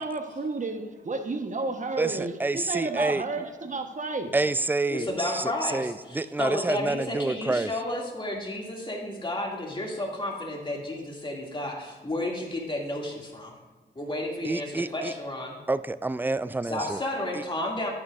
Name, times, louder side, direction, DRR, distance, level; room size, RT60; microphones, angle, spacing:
voice 1, 0.0-4.3, right 3 dB, 40° right, 5 dB, 1.2 m, -31 dB
voice 2, 2.0-3.2 4.3-7.7 14.4-15.1 15.7-17.0, right 2 dB, 10° right, 15 dB, 0.4 m, -28 dB
voice 3, 4.9-13.5 14.0-15.6 16.7-17.9, left 1 dB, 25° left, -1 dB, 2.4 m, -32 dB
10.5 x 9.4 x 2.5 m, 1.2 s
cardioid pair, 50°, 19 cm